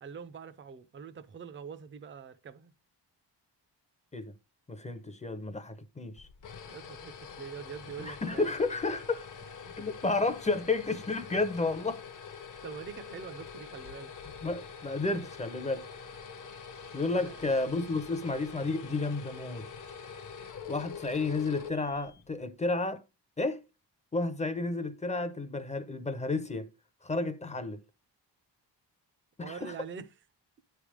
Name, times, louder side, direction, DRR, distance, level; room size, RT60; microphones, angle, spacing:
voice 1, 0.0-2.7 5.4-5.6 6.7-8.6 9.6-9.8 12.6-14.1 17.1-17.5 29.4-30.1, right 6 dB, 30° right, 0.5 m, -44 dB
voice 2, 4.7-6.3 8.0-9.3 9.8-12.0 14.4-15.8 16.9-19.7 20.7-23.0 23.4-23.6 24.1-26.7 27.0-27.8 29.4-29.7, left 3 dB, 15° left, 0.6 m, -31 dB
sound 1, 6.2-22.4, left 6 dB, 45° left, 0.8 m, -45 dB
9.3 x 3.4 x 4.8 m
wide cardioid pair, 165°, 43 cm